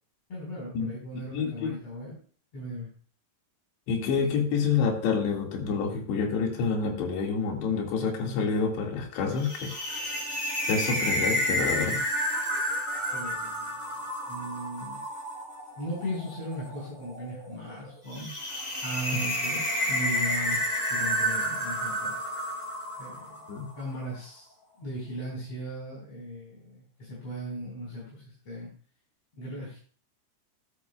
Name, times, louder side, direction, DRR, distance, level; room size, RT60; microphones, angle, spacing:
voice 1, 0.3-2.1 2.5-2.9 13.1-15.0 15.8-18.5 18.8-19.6 19.9-20.6 20.9-22.1 23.0-28.7 29.3-29.8, equal, 35° left, -6 dB, 5.4 m, -37 dB
voice 2, 1.3-1.8 3.9-10.2 10.6-12.0 23.5-23.7, left 5 dB, 75° left, 2 dB, 4.2 m, -28 dB
sound 1, 9.4-23.7, equal, 15° left, 5.9 m, -30 dB
13.5 x 11.5 x 2.3 m, 0.43 s
omnidirectional pair, 5.0 m